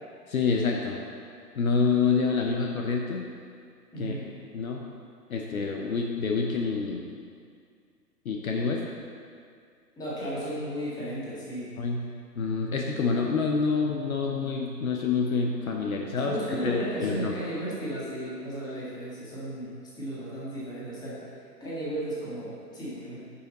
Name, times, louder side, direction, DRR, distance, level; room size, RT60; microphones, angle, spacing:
voice 1, 0.3-1.0 1.5-3.3 4.0-4.1 4.5-4.9 5.3-7.1 8.2-8.8 11.8-16.3 16.6-17.3, left 5 dB, 55° left, 0 dB, 0.9 m, -27 dB
voice 2, 3.9-4.3 10.0-11.8 16.2-23.2, right 1 dB, 10° left, -8 dB, 1.8 m, -35 dB
9.9 x 5.7 x 4.0 m, 2.2 s
figure-of-eight pair, 130°, 50 cm